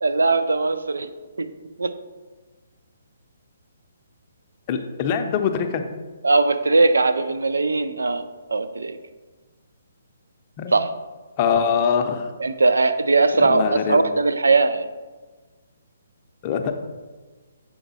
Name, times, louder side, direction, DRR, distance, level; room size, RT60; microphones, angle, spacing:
voice 1, 0.0-1.1 1.4-1.5 1.8-1.9 6.2-8.2 8.5-9.0 10.7-10.9 12.4-14.9, right 3 dB, 90° right, 11 dB, 0.4 m, -19 dB
voice 2, 4.7-5.8 10.6-10.7 11.4-12.3 13.4-14.0 16.4-16.7, left 7 dB, 35° left, 6 dB, 0.5 m, -23 dB
7.0 x 3.5 x 4.0 m, 1.3 s
hypercardioid pair, 150°, 0 cm